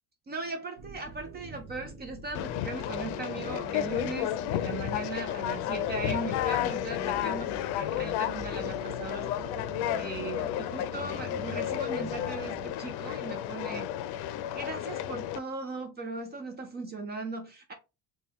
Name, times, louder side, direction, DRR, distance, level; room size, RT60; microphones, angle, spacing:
voice 1, 0.3-9.4 9.9-13.9 14.5-17.7, right 3 dB, 25° right, 0.5 m, -38 dB
sound 1, 0.8-12.7, right 3 dB, 60° right, 0.8 m, -45 dB
Conversation, 2.3-15.4, left 12 dB, 90° left, 0.5 m, -32 dB
4.2 x 2.2 x 3.4 m
cardioid pair, 160°, 37 cm